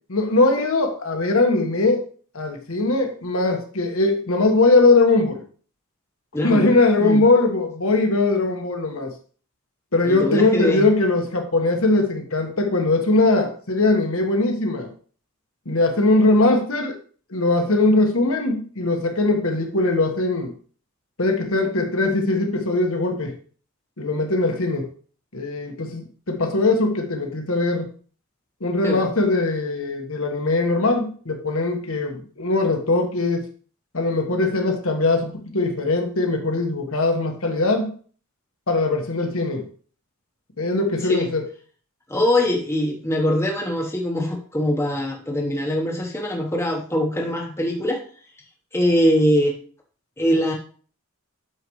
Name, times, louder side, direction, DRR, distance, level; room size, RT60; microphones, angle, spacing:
voice 1, 0.1-2.0 2.3-5.4 6.4-9.1 9.9-14.9 15.6-17.0 17.3-20.5 21.2-23.3 24.0-24.9 25.3-27.9 28.6-33.4 33.9-37.9 38.7-39.7 40.6-41.4, left 2 dB, 70° left, 3 dB, 1.4 m, -20 dB
voice 2, 6.3-6.7 7.0-7.2 10.0-10.9 28.8-29.1 41.1-41.3 42.1-48.0 48.7-49.5 50.2-50.5, equal, 10° left, 0 dB, 1.1 m, -22 dB
9.1 x 6.7 x 3.1 m, 0.43 s
head